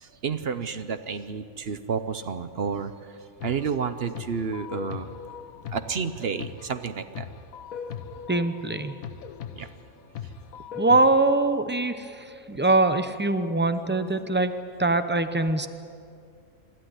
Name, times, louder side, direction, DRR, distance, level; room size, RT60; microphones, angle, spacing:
voice 1, 0.0-2.9 3.4-5.1 5.7-7.3 9.5-9.7, right 6 dB, 55° right, 11 dB, 0.9 m, -30 dB
sound 1, 3.4-11.0, left 7 dB, 85° left, 1.3 m, -39 dB
voice 2, 8.3-9.0 10.7-14.5 14.8-15.7, right 2 dB, 10° right, 10 dB, 0.6 m, -23 dB
25.5 x 12.5 x 9.7 m, 2.4 s
omnidirectional pair, 1.4 m